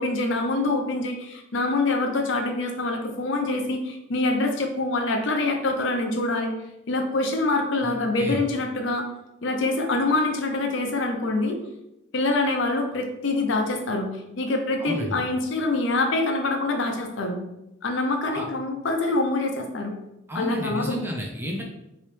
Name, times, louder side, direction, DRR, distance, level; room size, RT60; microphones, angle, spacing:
voice 1, 0.0-6.5 6.9-9.1 9.4-11.6 12.1-17.4 17.8-19.9 20.3-21.0, left 2 dB, 70° left, 3 dB, 0.6 m, -25 dB
voice 2, 7.8-8.4 14.8-15.2 18.3-18.5 20.3-21.6, equal, 10° right, -1 dB, 0.5 m, -32 dB
3.1 x 3.0 x 3.2 m, 0.89 s
head